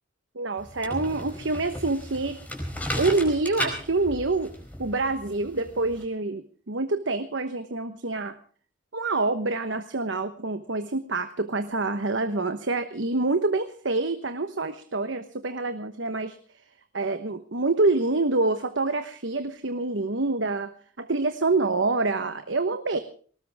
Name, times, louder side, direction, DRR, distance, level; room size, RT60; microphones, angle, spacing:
voice 1, 0.3-2.4 3.0-4.5 4.8-8.3 8.9-16.4 16.9-23.0, right 3 dB, 65° right, 9 dB, 1.1 m, -26 dB
sound 1, 0.6-6.0, equal, 10° left, 4.6 m, -35 dB
19.5 x 19.0 x 3.6 m, 0.43 s
head